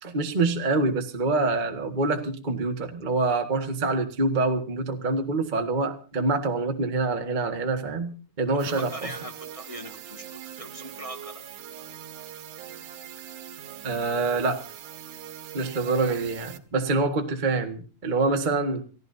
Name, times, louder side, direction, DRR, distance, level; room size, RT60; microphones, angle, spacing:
voice 1, 0.0-8.9 13.8-14.6 15.5-18.8, right 3 dB, 25° right, 4 dB, 1.0 m, -26 dB
voice 2, 8.5-11.5, right 1 dB, 15° left, 1 dB, 1.1 m, -40 dB
sound 1, 8.6-16.6, right 11 dB, 80° right, 2.7 m, -42 dB
29.5 x 15.5 x 2.7 m, 0.36 s
omnidirectional pair, 3.6 m